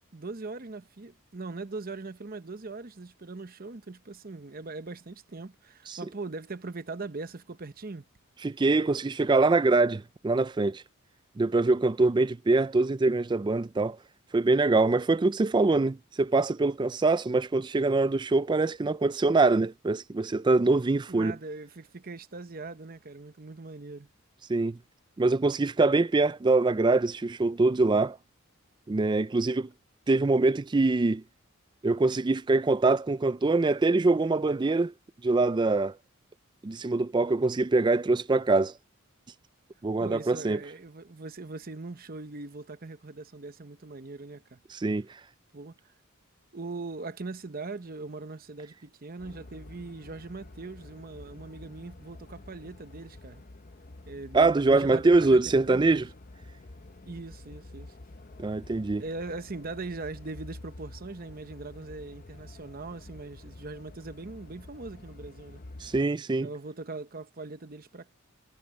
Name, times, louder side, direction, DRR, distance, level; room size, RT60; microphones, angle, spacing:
voice 1, 0.1-8.0 21.1-24.1 40.0-44.6 45.5-45.8 46.5-53.4 54.1-56.1 57.1-57.9 59.0-65.6 66.4-68.1, right 3 dB, 40° right, 0.8 m, -40 dB
voice 2, 8.4-10.8 11.4-14.0 14.3-21.4 24.5-24.8 25.2-28.2 28.9-29.7 30.1-31.2 31.8-34.9 35.2-35.9 36.6-38.7 39.8-40.6 44.7-45.1 54.3-56.0 58.4-59.0 65.8-66.5, right 3 dB, 20° right, 0.3 m, -24 dB
sound 1, 49.2-66.0, left 2 dB, 40° left, 0.8 m, -48 dB
head